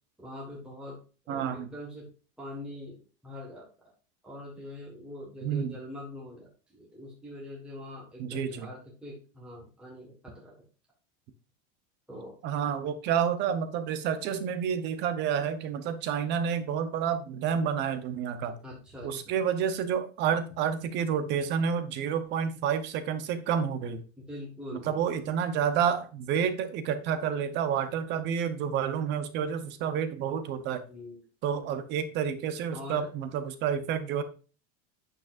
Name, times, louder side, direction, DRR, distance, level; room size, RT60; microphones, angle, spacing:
voice 1, 0.2-1.0 1.2-2.1 2.4-3.9 4.2-10.6 12.1-12.3 18.6-19.3 24.3-25.3 30.9-31.2 32.7-33.1, left 1 dB, 5° right, -4 dB, 1.4 m, -43 dB
voice 2, 1.3-1.7 5.4-5.8 8.2-8.7 12.4-18.6 19.0-24.0 24.7-30.8 31.4-34.2, right 7 dB, 30° right, 11 dB, 0.7 m, -29 dB
8.8 x 6.6 x 2.5 m, 0.35 s
supercardioid pair, 180°, 35 cm